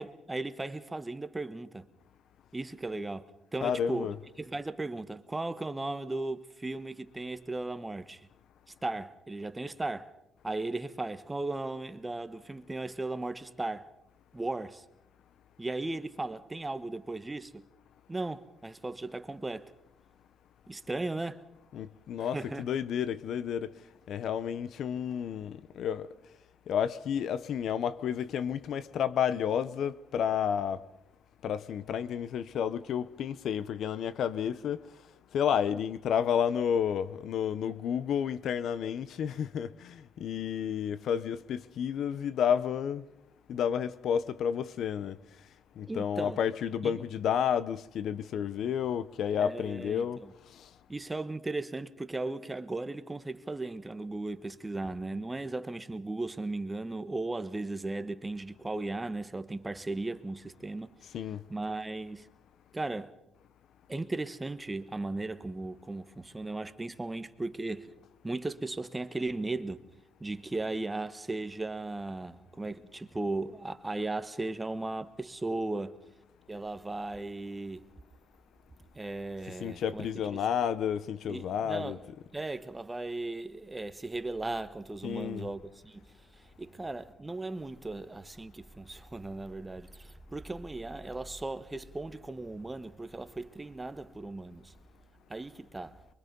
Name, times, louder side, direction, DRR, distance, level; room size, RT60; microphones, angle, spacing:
voice 1, 0.0-1.9 2.5-8.3 8.8-10.1 10.4-13.9 14.3-14.8 15.6-17.7 18.1-19.7 20.7-21.4 22.2-22.6 45.9-46.4 46.8-47.1 49.4-50.3 50.9-60.9 61.5-62.3 62.7-63.1 63.9-67.9 68.2-69.8 70.2-76.0 76.5-77.9 78.9-80.4 81.3-94.7 95.3-96.0, right 2 dB, 15° right, 1.3 m, -36 dB
voice 2, 3.6-4.2 21.7-23.7 24.1-26.1 26.7-30.8 31.4-34.8 35.3-43.0 43.5-45.2 45.8-50.2 50.5-50.7 61.1-61.4 79.6-82.0 85.0-85.5, left 8 dB, 70° left, 0.8 m, -31 dB
24.0 x 23.5 x 5.4 m
cardioid pair, 90°, 0 cm